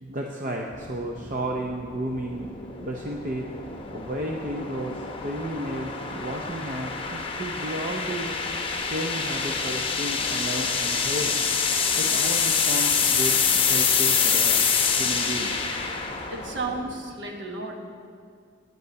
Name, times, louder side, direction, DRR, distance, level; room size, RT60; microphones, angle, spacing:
voice 1, 0.0-2.5 2.8-3.5 3.9-8.3 8.9-14.7 15.0-15.6, right 1 dB, 40° right, 0 dB, 0.6 m, -33 dB
sound 1, 0.7-17.0, left 6 dB, 25° left, 0.8 m, -26 dB
voice 2, 16.3-17.8, right 3 dB, 60° right, 2 dB, 1.3 m, -33 dB
9.2 x 8.2 x 6.4 m, 2.2 s
head